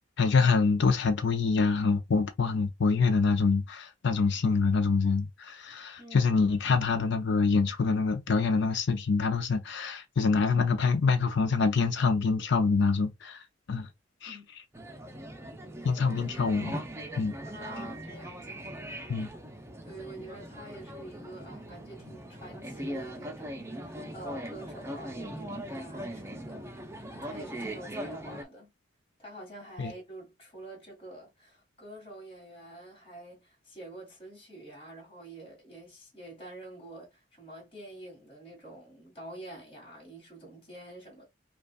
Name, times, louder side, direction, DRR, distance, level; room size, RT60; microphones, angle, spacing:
voice 1, 0.2-13.4 13.7-13.9 14.2-14.4 15.8-16.8 17.2-17.3 19.1-19.3 29.8-29.9, left 4 dB, 65° left, 0.5 m, -25 dB
voice 2, 6.0-6.4 14.3-14.4 14.8-14.9 17.4-19.3 19.8-26.7 27.1-28.7 29.2-41.3, right 1 dB, 30° left, 1.8 m, -47 dB
sound 1, 14.7-28.4, right 1 dB, 15° right, 0.6 m, -40 dB
5.2 x 2.3 x 2.3 m
head